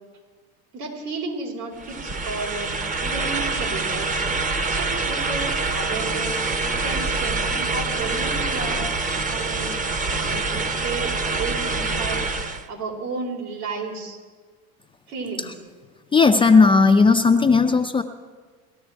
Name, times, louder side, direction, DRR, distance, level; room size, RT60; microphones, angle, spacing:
voice 1, 0.7-2.7 3.0-4.3 4.7-8.9 9.3-9.8 10.1-12.3 12.7-14.2 15.1-15.5, right 3 dB, 90° right, -1 dB, 4.4 m, -33 dB
sound 1, 1.8-12.7, right 3 dB, 20° right, 0.7 m, -25 dB
voice 2, 16.1-18.0, left 4 dB, 15° left, 5 dB, 0.3 m, -15 dB
19.0 x 12.5 x 4.6 m, 1.4 s
supercardioid pair, 115°, 45 cm